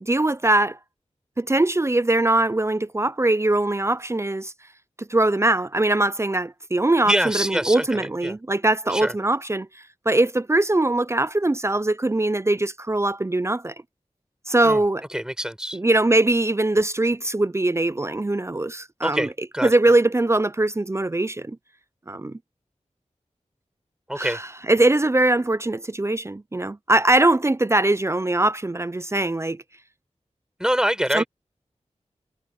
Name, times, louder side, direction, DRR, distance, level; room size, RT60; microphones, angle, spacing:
voice 1, 0.0-0.8 1.4-4.5 5.0-9.7 10.1-13.7 14.5-15.0 15.7-19.3 19.6-21.6 22.1-22.3 24.2-24.4 24.7-29.6 31.1-31.2, right 2 dB, 25° right, 0.5 m, -21 dB
voice 2, 7.1-8.4 8.9-9.1 14.6-14.8 15.1-15.8 19.0-19.7 24.1-24.4 30.6-31.3, equal, 5° right, 5.1 m, -25 dB
wide cardioid pair, 85°, 12 cm